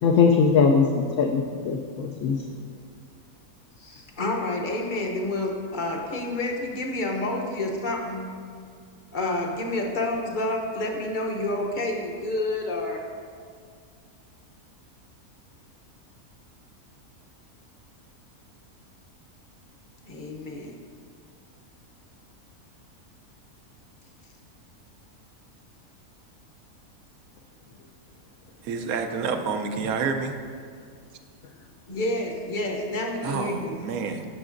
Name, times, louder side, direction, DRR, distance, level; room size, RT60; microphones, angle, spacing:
voice 1, 0.0-2.4, left 5 dB, 65° left, 1 dB, 0.8 m, -21 dB
voice 2, 3.8-8.3 9.1-13.0 20.0-20.7 31.9-33.8, left 2 dB, 40° left, 1 dB, 0.9 m, -29 dB
voice 3, 28.6-30.3 33.2-34.2, right 5 dB, 75° right, 6 dB, 1.1 m, -28 dB
14.0 x 6.0 x 2.5 m, 2.2 s
omnidirectional pair, 1.6 m